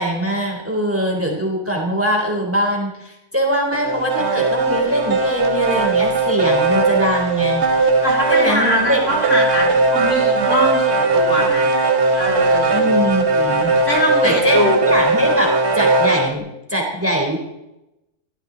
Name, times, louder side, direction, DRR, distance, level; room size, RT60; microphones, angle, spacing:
voice 1, 0.0-7.6 8.3-9.0 12.7-13.7 14.2-17.4, equal, 10° right, 1 dB, 3.8 m, -22 dB
sound 1, 3.7-16.3, right 3 dB, 50° right, 1.8 m, -18 dB
voice 2, 8.0-11.7 12.2-12.9 13.8-14.9, equal, 55° left, -1 dB, 4.5 m, -22 dB
22.0 x 16.5 x 4.0 m, 0.89 s
omnidirectional pair, 1.5 m